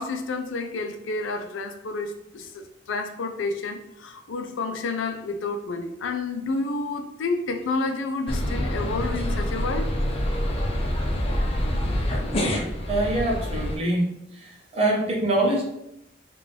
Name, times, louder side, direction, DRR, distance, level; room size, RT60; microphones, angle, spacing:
voice 1, 0.0-9.9, left 3 dB, 80° left, 6 dB, 0.4 m, -30 dB
sound 1, 8.3-13.8, equal, 30° left, 0.5 m, -26 dB
voice 2, 12.9-14.1 14.7-15.6, right 1 dB, 30° right, -3 dB, 0.8 m, -23 dB
3.6 x 2.5 x 3.3 m, 0.84 s
head